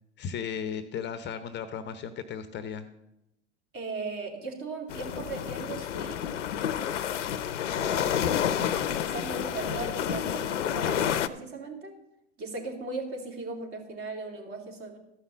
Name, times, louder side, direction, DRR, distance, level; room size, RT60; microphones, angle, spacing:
voice 1, 0.2-2.9, left 7 dB, 30° left, 11 dB, 0.7 m, -35 dB
voice 2, 3.7-6.2 7.7-12.0 12.4-15.0, right 3 dB, 35° right, 2 dB, 2.8 m, -38 dB
sound 1, 4.9-11.3, left 9 dB, 80° left, 0.7 m, -29 dB
13.0 x 5.7 x 7.2 m, 0.87 s
hypercardioid pair, 100°, 36 cm